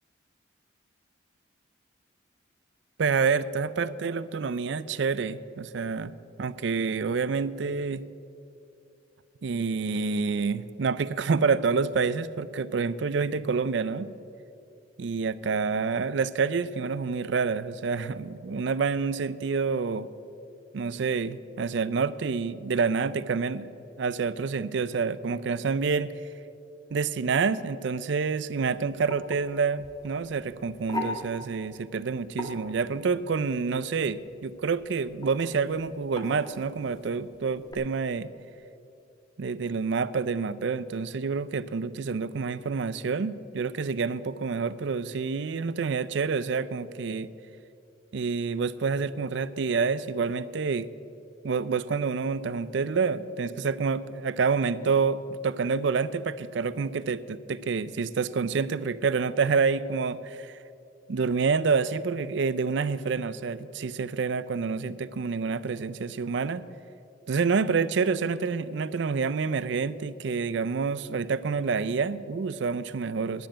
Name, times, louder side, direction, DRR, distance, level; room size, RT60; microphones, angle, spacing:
voice 1, 3.0-6.1 6.4-8.0 9.4-14.1 15.0-20.1 20.7-23.7 24.0-26.1 26.9-38.3 39.4-47.3 48.1-50.9 51.4-60.6 61.1-66.6 67.3-73.5, right 5 dB, 65° right, 17 dB, 0.4 m, -28 dB
sound 1, 28.4-37.7, left 2 dB, 20° left, 1.8 m, -41 dB
10.5 x 9.0 x 8.8 m, 2.7 s
head